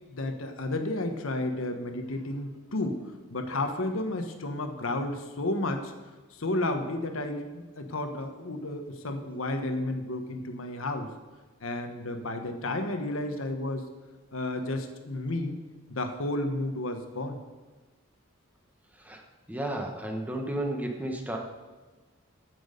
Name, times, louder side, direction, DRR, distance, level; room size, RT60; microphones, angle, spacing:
voice 1, 0.1-5.9 6.3-11.1 11.6-13.9 14.3-15.6 15.9-17.4, left 2 dB, 75° left, 6 dB, 1.2 m, -32 dB
voice 2, 19.5-21.4, right 1 dB, 10° right, 2 dB, 1.3 m, -32 dB
15.0 x 6.2 x 5.3 m, 1.3 s
head